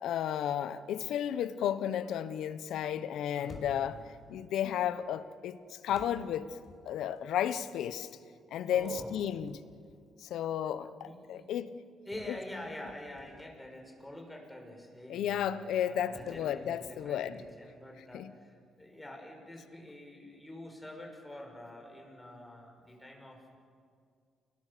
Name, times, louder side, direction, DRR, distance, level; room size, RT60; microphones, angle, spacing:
voice 1, 0.0-4.0 4.3-6.6 6.8-8.1 8.5-9.6 10.2-11.7 15.1-17.4 18.1-18.3, left 9 dB, 80° left, 14 dB, 1.1 m, -33 dB
voice 2, 3.3-4.0 8.7-9.2 11.0-11.5 12.1-23.6, left 1 dB, 10° left, 1 dB, 6.1 m, -47 dB
sound 1, 3.5-4.1 5.9-7.2 8.7-10.1 10.5-10.8 12.1-13.6 16.1-17.8, left 2 dB, 35° left, 4.9 m, -52 dB
30.0 x 21.0 x 6.9 m, 2.2 s
cardioid pair, 90°, 0 cm